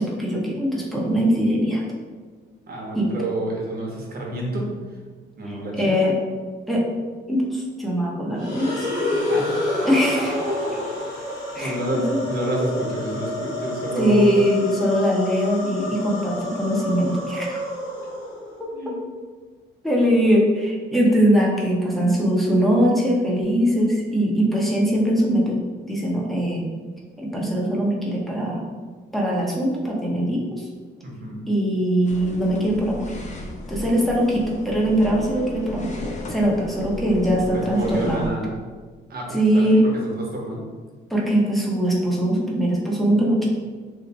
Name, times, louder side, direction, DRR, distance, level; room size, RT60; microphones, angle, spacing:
voice 1, 0.0-1.8 2.9-3.1 5.5-6.1 6.7-6.8 7.3-8.9 9.8-10.8 11.5-12.2 14.0-17.6 18.6-18.7 19.8-25.6 25.9-26.6 27.2-28.6 29.1-30.7 31.5-33.2 33.7-36.0 36.3-38.2 39.3-39.8 41.1-43.5, equal, ahead, -3 dB, 0.8 m, -21 dB
voice 2, 2.7-4.7 5.4-6.0 9.3-9.6 11.5-14.4 18.7-19.0 31.0-31.4 37.5-38.5 39.1-40.6, right 1 dB, 50° right, -2 dB, 1.0 m, -29 dB
sound 1, 8.4-18.6, left 2 dB, 75° left, 1.2 m, -28 dB
sound 2, 32.1-38.3, left 1 dB, 35° left, 0.6 m, -35 dB
3.1 x 2.1 x 3.9 m, 1.5 s
cardioid pair, 90°, 20 cm